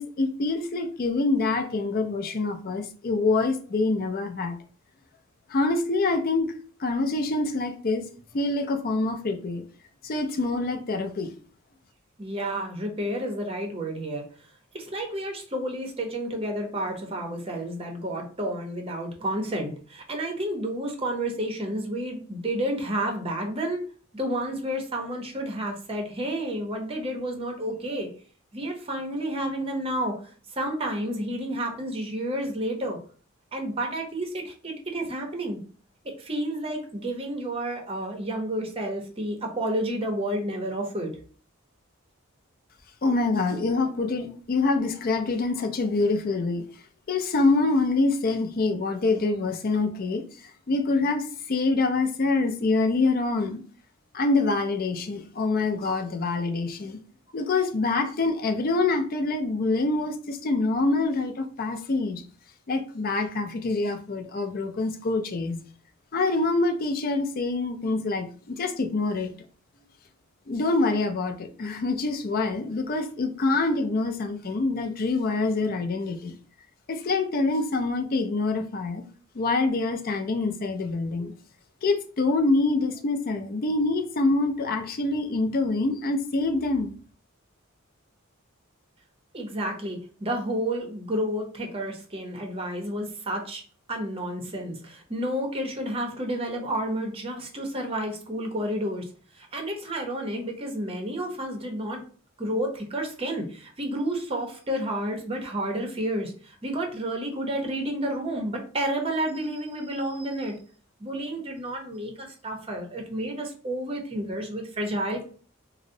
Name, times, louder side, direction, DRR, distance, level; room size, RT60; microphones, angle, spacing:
voice 1, 0.0-4.6 5.5-6.5 6.8-8.1 8.3-9.7 10.0-11.3 43.0-46.6 47.1-53.6 54.1-57.0 57.3-62.2 62.7-65.6 66.1-69.3 70.5-76.4 76.9-79.0 79.3-81.3 81.8-86.9, left 3 dB, 45° left, 0.4 m, -25 dB
voice 2, 12.2-14.5 14.7-23.8 24.1-28.1 28.5-33.0 33.5-35.6 36.0-41.1 89.3-93.6 93.9-99.0 99.3-102.0 102.4-110.6 111.0-115.2, right 1 dB, 25° right, 0.7 m, -30 dB
3.8 x 2.0 x 2.6 m
head